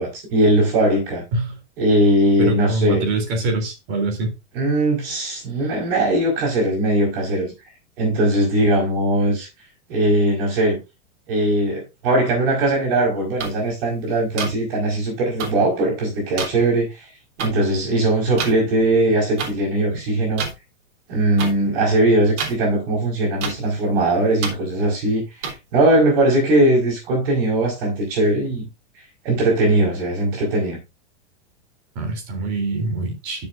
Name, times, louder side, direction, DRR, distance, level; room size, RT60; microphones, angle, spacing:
voice 1, 0.0-1.2 1.8-3.0 4.5-7.5 8.0-9.5 9.9-10.8 11.3-17.1 17.4-20.5 21.1-25.2 25.7-28.7 29.2-30.8, right 1 dB, 55° right, 5.0 m, -19 dB
voice 2, 2.4-4.3 31.9-33.5, right 3 dB, 30° right, 3.5 m, -24 dB
sound 1, 13.4-13.5 14.4-14.5 15.4-15.5 16.4-16.5 17.4-17.5 18.4-18.5 19.4-19.5 20.4-20.5 21.4-21.5 22.4-22.5 23.4-23.5 24.4-24.5 25.4-25.5, right 5 dB, 80° right, 3.6 m, -26 dB
12.0 x 7.1 x 2.6 m
supercardioid pair, 175°, 35 cm